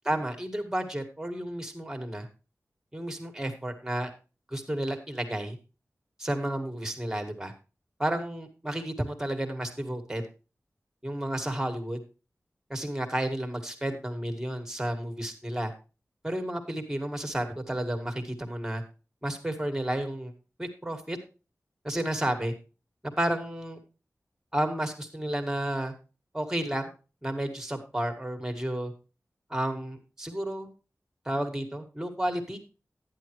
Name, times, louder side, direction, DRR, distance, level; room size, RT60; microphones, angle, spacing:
voice 1, 0.0-2.3 2.9-4.1 4.5-5.6 6.2-7.5 8.0-10.2 11.0-12.0 12.7-15.7 16.2-18.8 19.2-20.3 20.6-21.2 21.8-22.5 23.2-23.8 24.5-25.9 26.3-26.8 27.2-28.9 29.5-30.7 31.3-32.6, right 1 dB, 10° right, 5 dB, 2.0 m, -31 dB
11.0 x 10.0 x 3.0 m, 0.32 s
wide cardioid pair, 70°, 6 cm